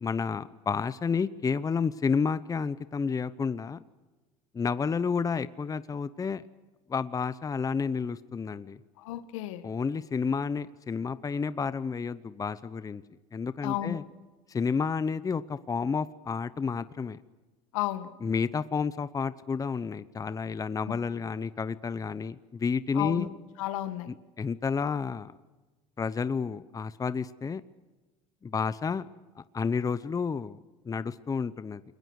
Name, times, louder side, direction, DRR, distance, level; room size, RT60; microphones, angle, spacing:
voice 1, 0.0-3.8 4.5-6.4 6.9-8.8 9.6-13.0 13.3-14.0 14.5-17.2 18.2-23.3 24.1-25.3 26.0-27.6 28.4-29.1 29.5-30.6 30.8-31.8, left 5 dB, 20° left, 15 dB, 0.8 m, -30 dB
voice 2, 9.0-9.6 13.6-14.0 17.7-18.1 23.0-23.3 23.6-24.1, left 13 dB, 80° left, 11 dB, 1.8 m, -32 dB
29.5 x 22.0 x 6.5 m, 1.2 s
supercardioid pair, 95°, 17 cm